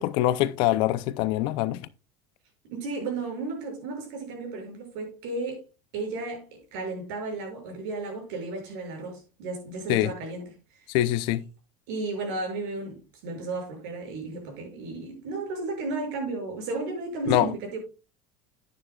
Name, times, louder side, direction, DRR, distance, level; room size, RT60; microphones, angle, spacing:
voice 1, 0.0-1.8 9.9-10.1 10.9-11.4 17.3-17.5, left 14 dB, 60° left, 0.6 m, -24 dB
voice 2, 2.6-5.6 5.9-10.5 11.9-17.8, right 3 dB, 75° right, 6.4 m, -34 dB
11.5 x 9.8 x 2.4 m
cardioid pair, 150°, 9 cm